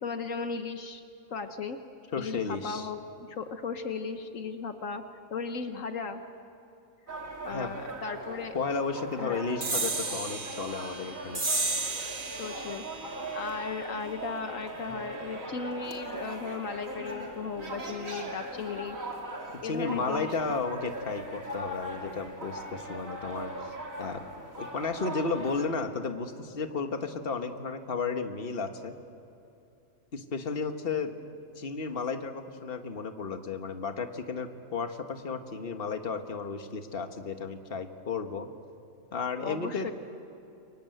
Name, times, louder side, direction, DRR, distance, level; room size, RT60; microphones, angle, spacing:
voice 1, 0.0-1.0 1.3-1.8 2.1-3.0 3.3-5.0 5.3-6.2 7.4-8.5 9.2-9.4 12.4-19.0 19.6-20.6 39.4-39.9, left 5 dB, 70° left, 7 dB, 1.5 m, -36 dB
voice 2, 2.1-2.9 7.5-7.7 8.5-11.4 19.6-23.7 24.0-24.2 24.6-29.0 30.1-31.1 31.6-38.5 39.1-39.9, left 4 dB, 45° left, 6 dB, 1.6 m, -33 dB
sound 1, 7.1-25.7, right 1 dB, 75° right, 3.6 m, -40 dB
sound 2, 9.6-16.5, right 3 dB, 40° right, 1.8 m, -35 dB
29.5 x 24.5 x 7.9 m, 2.8 s
omnidirectional pair, 1.4 m